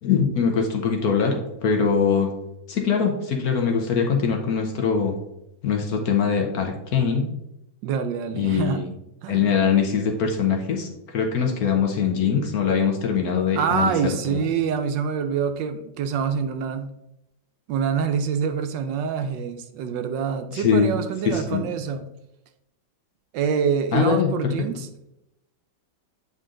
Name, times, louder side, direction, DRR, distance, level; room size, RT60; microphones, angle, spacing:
voice 1, 0.0-2.3 2.7-5.1 5.6-7.3 8.3-8.9 9.3-13.9 14.3-14.4 20.5-20.9 21.3-21.6 23.9-24.3, left 6 dB, 60° left, 3 dB, 1.1 m, -22 dB
voice 2, 7.8-8.8 9.2-9.5 13.5-16.9 17.7-22.1 23.3-24.9, right 7 dB, 75° right, 8 dB, 1.2 m, -26 dB
8.0 x 3.8 x 3.7 m, 0.86 s
omnidirectional pair, 2.1 m